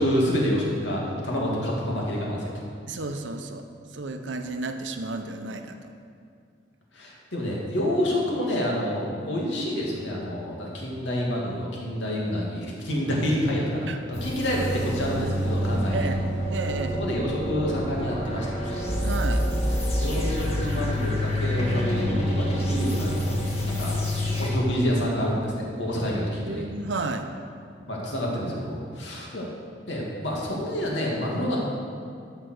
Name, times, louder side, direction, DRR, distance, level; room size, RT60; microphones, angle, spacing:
voice 1, 0.0-2.5 6.9-16.1 17.0-18.9 19.8-23.9 24.4-26.6 27.9-29.5 29.9-31.6, equal, 90° left, -3 dB, 2.5 m, -28 dB
voice 2, 2.9-3.6 3.9-5.9 13.9-14.0 15.9-16.2 16.5-17.0 19.0-19.4 26.4-27.3, right 3 dB, 90° right, 6 dB, 0.8 m, -32 dB
sound 1, 14.1-24.5, equal, 35° left, 2.0 m, -27 dB
12.5 x 5.7 x 6.5 m, 2.3 s
head